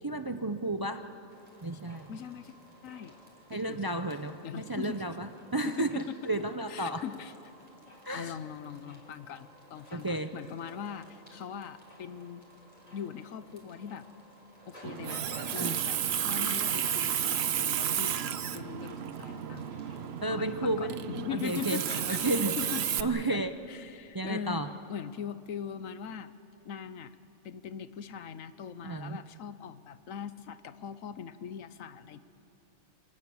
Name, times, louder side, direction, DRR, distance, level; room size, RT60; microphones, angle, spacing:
voice 1, 0.0-1.1 1.6-2.1 3.5-7.0 8.0-8.4 9.9-10.3 15.5-15.9 20.2-21.0 21.3-22.6 23.0-23.6 24.1-24.7 28.8-29.2, right 2 dB, 35° right, 9 dB, 0.3 m, -32 dB
sound 1, 1.3-20.4, equal, 30° left, 4.3 m, -55 dB
voice 2, 2.1-2.5 2.8-3.2 3.5-4.1 4.4-5.0 5.6-6.2 6.7-7.3 8.1-12.4 12.9-14.1 14.7-20.0 20.3-22.2 22.6-22.9 23.3-23.4 23.7-26.3 26.6-27.1 27.4-32.2, left 8 dB, 90° left, 13 dB, 1.2 m, -41 dB
Water tap faucet, 14.8-23.0, right 9 dB, 60° right, 0.9 m, -32 dB
27.0 x 19.0 x 7.0 m, 2.7 s
omnidirectional pair, 1.3 m